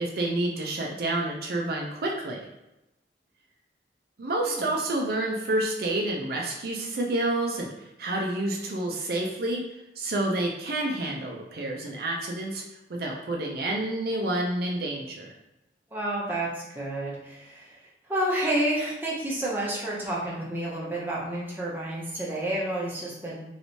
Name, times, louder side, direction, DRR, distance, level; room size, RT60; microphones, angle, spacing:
voice 1, 0.0-2.5 4.2-7.7 8.0-9.6 10.0-12.6 12.9-15.3, right 1 dB, 55° right, -1 dB, 0.5 m, -29 dB
voice 2, 15.9-17.8 18.1-23.4, right 1 dB, 10° right, -6 dB, 0.7 m, -30 dB
3.1 x 3.0 x 2.8 m, 0.91 s
head